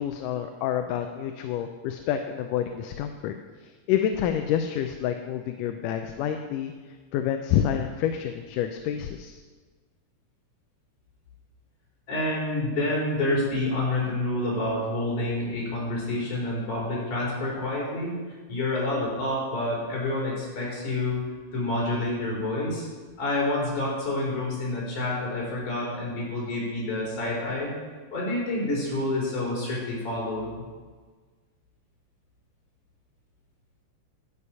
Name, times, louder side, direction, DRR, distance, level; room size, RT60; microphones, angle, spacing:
voice 1, 0.0-3.3 3.6-6.7 7.1-9.4, left 9 dB, 90° left, 6 dB, 2.2 m, -28 dB
voice 2, 12.1-18.2 18.5-21.2 21.5-22.9 23.2-27.7 28.1-30.5, left 2 dB, 70° left, -5 dB, 5.2 m, -28 dB
11.0 x 8.7 x 5.5 m, 1.4 s
omnidirectional pair, 3.7 m